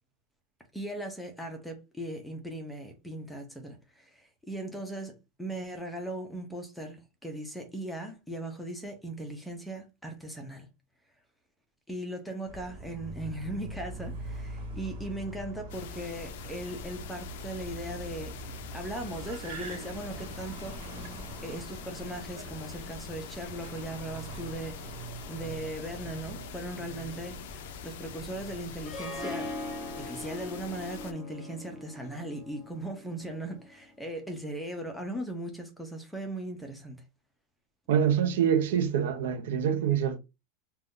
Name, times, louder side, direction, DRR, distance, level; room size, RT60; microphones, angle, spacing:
voice 1, 0.7-10.7 11.9-20.8 21.4-24.8 25.3-27.4 27.8-29.5 29.8-37.0, right 1 dB, ahead, 0.5 m, -38 dB
Car, 12.5-29.2, right 2 dB, 45° right, 1.1 m, -43 dB
sound 1, 15.7-31.1, left 7 dB, 60° left, 0.4 m, -44 dB
Harp, 28.9-33.9, left 2 dB, 25° left, 0.8 m, -41 dB
voice 2, 37.9-40.2, right 8 dB, 75° right, 0.6 m, -25 dB
2.5 x 2.2 x 3.6 m
supercardioid pair, 175°, 0 cm